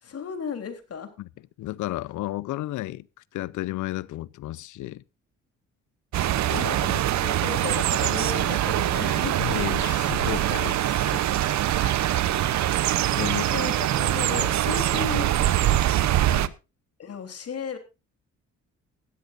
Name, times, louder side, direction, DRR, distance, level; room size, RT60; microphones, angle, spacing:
voice 1, 0.0-1.1 6.5-9.5 13.2-15.3 17.0-17.8, left 6 dB, 50° left, 3.5 m, -35 dB
voice 2, 1.6-3.1 3.3-5.0 6.5-6.6 9.4-11.2 11.8-12.0 13.2-13.5 14.3-14.5 16.3-16.5, left 16 dB, 80° left, 0.7 m, -33 dB
sound 1, 6.1-16.5, right 13 dB, 65° right, 0.8 m, -23 dB
sound 2, 7.7-14.8, right 6 dB, 50° right, 4.4 m, -41 dB
16.5 x 13.0 x 2.6 m
cardioid pair, 90°, 30 cm